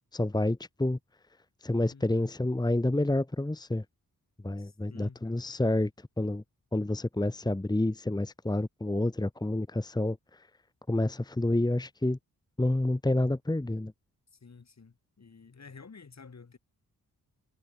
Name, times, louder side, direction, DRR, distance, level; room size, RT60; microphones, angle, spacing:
voice 1, 0.1-1.0 1.6-3.8 4.4-6.4 6.7-10.5 10.9-12.2 12.6-13.9, left 1 dB, 10° left, 1.3 m, -29 dB
voice 2, 1.9-2.3 4.6-5.4 14.4-16.6, left 5 dB, 45° left, 3.9 m, -51 dB
wide cardioid pair, 130°, 36 cm